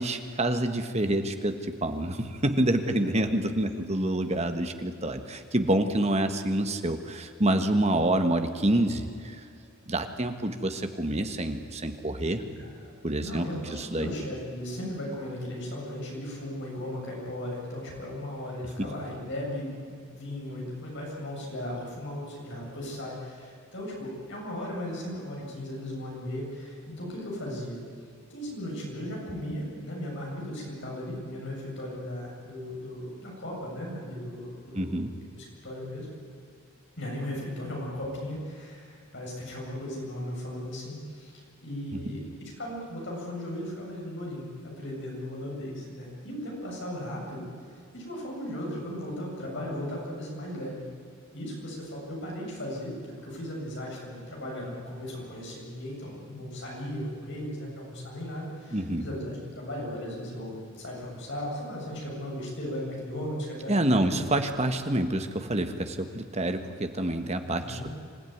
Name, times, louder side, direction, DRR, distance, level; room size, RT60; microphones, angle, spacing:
voice 1, 0.0-9.4 9.9-12.4 13.0-13.4 13.8-14.1 34.7-35.1 58.7-59.0 63.7-67.9, right 1 dB, 30° right, 7 dB, 1.5 m, -27 dB
voice 2, 12.4-13.0 13.2-27.8 28.3-35.0 35.3-36.1 37.0-47.5 47.9-50.8 51.3-64.1 67.6-67.9, left 1 dB, 55° left, -2 dB, 7.8 m, -37 dB
26.5 x 15.5 x 9.5 m, 2.5 s
head